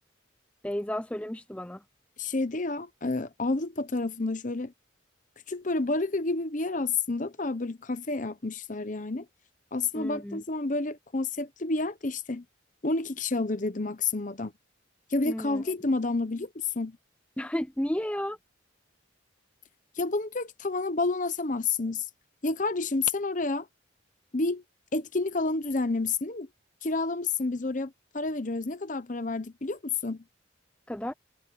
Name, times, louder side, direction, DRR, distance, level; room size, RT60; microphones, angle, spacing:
voice 1, 0.6-1.8 9.9-10.4 15.2-15.6 17.4-18.4 30.9-31.1, equal, 5° left, 0.5 m, -32 dB
voice 2, 2.2-4.7 5.5-9.3 9.7-12.4 12.8-14.5 15.1-17.0 20.0-22.0 22.4-23.7 24.3-24.6 24.9-26.5 26.8-30.2, left 3 dB, 40° left, 1.0 m, -29 dB
head